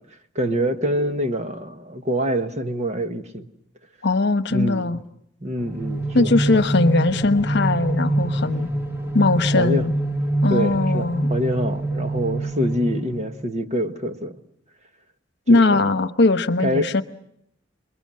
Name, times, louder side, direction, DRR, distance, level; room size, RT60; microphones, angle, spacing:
voice 1, 0.3-3.5 4.5-5.0 5.4-6.6 9.6-9.9 10.5-14.4 15.5-15.8 16.6-16.9, equal, 35° right, 7 dB, 1.5 m, -25 dB
voice 2, 4.0-5.0 6.1-8.7 9.1-9.9 10.4-11.3 15.5-17.0, left 2 dB, 65° left, 11 dB, 1.1 m, -20 dB
sound 1, 5.6-13.5, right 1 dB, 10° right, 1.9 m, -25 dB
27.0 x 22.0 x 7.7 m, 0.73 s
head